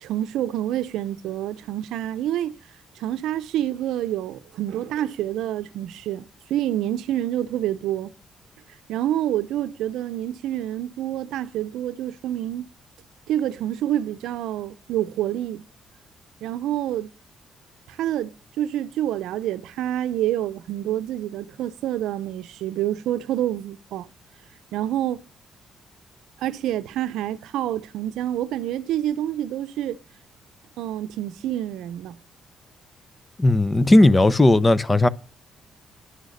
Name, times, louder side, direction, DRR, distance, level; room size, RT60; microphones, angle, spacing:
voice 1, 0.0-2.6 3.0-8.1 8.9-12.7 13.3-15.6 16.4-17.1 17.9-24.1 24.7-25.2 26.4-30.0 30.8-32.2, right 12 dB, 85° right, 0.6 m, -27 dB
voice 2, 33.4-35.1, left 2 dB, 20° left, 0.7 m, -16 dB
11.0 x 6.3 x 6.5 m
cardioid pair, 90°, 0 cm